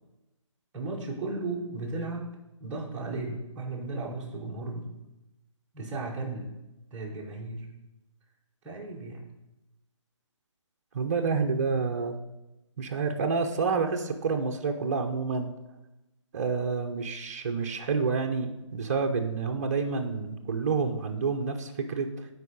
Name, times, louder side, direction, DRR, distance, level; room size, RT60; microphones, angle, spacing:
voice 1, 0.7-5.0 5.7-6.6 6.9-7.7 8.6-9.3, right 3 dB, 10° right, -3 dB, 1.0 m, -35 dB
voice 2, 10.9-12.2 12.8-15.5 16.3-22.3, right 4 dB, 30° right, 3 dB, 0.7 m, -28 dB
8.1 x 4.7 x 5.2 m, 0.96 s
hypercardioid pair, 165°, 16 cm